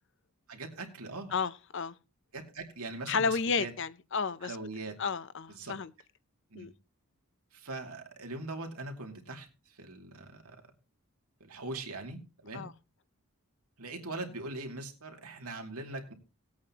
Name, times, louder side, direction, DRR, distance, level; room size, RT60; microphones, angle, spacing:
voice 1, 0.5-1.3 2.3-3.7 4.4-5.0 5.5-5.8 6.5-6.7 7.5-10.7 11.4-12.7 13.8-16.1, right 2 dB, 90° right, 2.5 m, -41 dB
voice 2, 1.3-1.9 3.1-4.5 5.0-5.9 6.5-6.7 12.5-12.7, left 5 dB, 55° left, 0.6 m, -32 dB
19.0 x 8.6 x 2.9 m
head